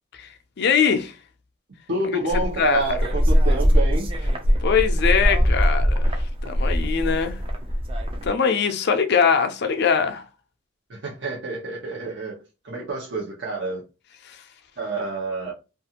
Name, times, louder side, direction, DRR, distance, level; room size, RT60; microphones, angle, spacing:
voice 1, 0.6-1.1 2.6-2.8 4.6-7.4 8.2-10.2 14.3-14.4, left 6 dB, 55° left, 0.5 m, -22 dB
voice 2, 1.9-4.1 10.9-12.4 12.6-13.8 14.8-15.5, right 2 dB, 60° right, 0.8 m, -28 dB
sound 1, 2.3-8.3, equal, 30° right, 0.4 m, -21 dB
2.5 x 2.4 x 2.8 m
head